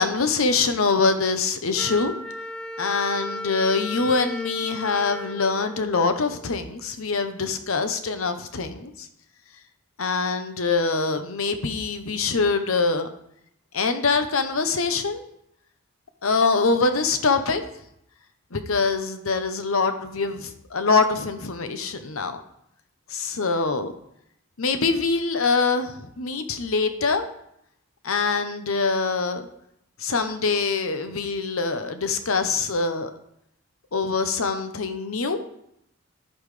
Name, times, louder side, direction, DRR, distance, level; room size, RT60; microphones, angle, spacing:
voice 1, 0.0-2.1 2.8-9.1 10.0-13.1 13.7-15.2 16.2-17.6 18.5-22.4 23.1-23.9 24.6-27.2 28.0-29.4 30.0-33.1 33.9-35.4, left 4 dB, 70° left, 8 dB, 0.9 m, -24 dB
Wind instrument woodwind instrument, 1.8-6.6, left 1 dB, 5° left, 0.5 m, -36 dB
11.5 x 8.5 x 3.3 m, 0.77 s
head